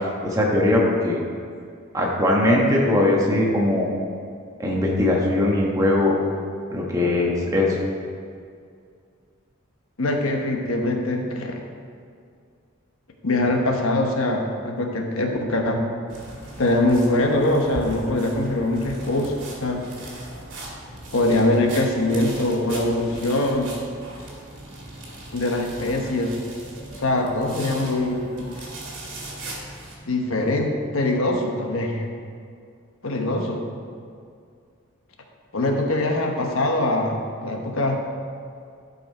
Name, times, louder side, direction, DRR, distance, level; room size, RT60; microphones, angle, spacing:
voice 1, 0.2-1.2 1.9-3.9 4.6-6.1 6.7-7.8, left 1 dB, 15° right, -3 dB, 1.2 m, -20 dB
voice 2, 10.0-11.6 13.2-15.8 16.6-19.3 19.6-19.8 21.1-23.7 25.3-26.3 27.0-28.7 30.1-32.1 33.0-33.6 35.5-38.0, left 1 dB, 80° left, 2 dB, 1.1 m, -23 dB
sound 1, 16.1-29.9, right 1 dB, 60° right, 2.1 m, -38 dB
11.5 x 5.5 x 4.5 m, 2.2 s
head